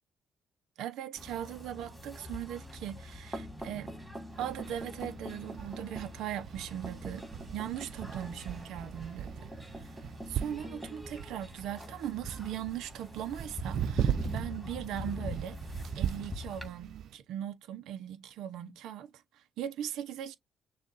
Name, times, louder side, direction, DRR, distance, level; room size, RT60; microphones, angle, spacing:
voice 1, 0.8-3.9 4.4-7.2 7.5-10.0 10.3-15.6 15.9-20.3, right 10 dB, 85° right, 0.8 m, -39 dB
sound 1, 1.2-16.7, left 1 dB, 5° right, 1.9 m, -43 dB
sound 2, 4.3-17.1, right 10 dB, 70° right, 0.3 m, -39 dB
6.4 x 2.5 x 2.5 m
cardioid pair, 90°, 0 cm